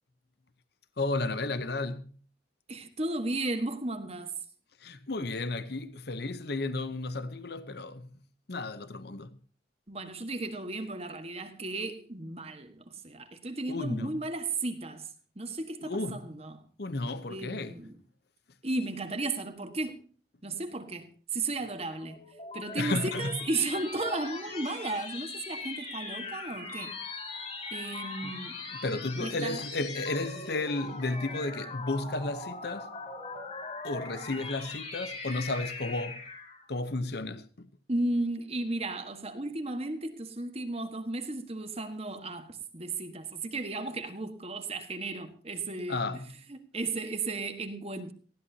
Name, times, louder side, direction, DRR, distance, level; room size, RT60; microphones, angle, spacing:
voice 1, 1.0-2.0 4.8-8.1 8.5-9.4 13.7-14.1 15.8-16.2 16.8-17.8 22.8-23.4 28.2-28.4 28.7-32.9 33.8-36.2 36.7-37.7 45.9-46.3, left 2 dB, 55° left, 0.8 m, -33 dB
voice 2, 2.7-4.3 9.9-15.1 15.4-16.6 17.3-18.0 18.6-20.0 20.4-22.2 22.5-27.0 27.7-28.6 29.2-29.6 37.9-46.0 46.5-48.1, right 2 dB, 30° right, 1.5 m, -34 dB
sound 1, 22.0-36.7, left 3 dB, 35° left, 5.2 m, -40 dB
19.5 x 15.5 x 2.8 m
head